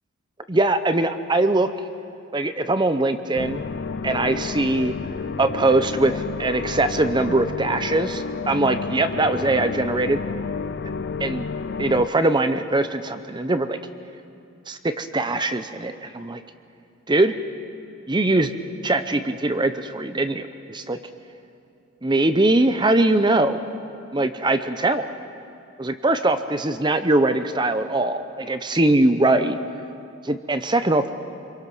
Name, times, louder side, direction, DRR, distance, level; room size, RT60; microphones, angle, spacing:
voice 1, 0.5-1.7 2.3-3.6 4.0-4.9 5.4-10.2 11.2-11.4 11.8-13.8 14.7-16.4 17.1-17.4 18.1-18.5 18.8-21.0 22.0-23.6 24.1-25.1 25.8-29.6 30.2-31.1, right 2 dB, 20° right, 10 dB, 0.6 m, -21 dB
sound 1, 3.3-12.1, left 5 dB, 45° left, 0.4 m, -30 dB
26.5 x 23.0 x 6.1 m, 2.7 s
head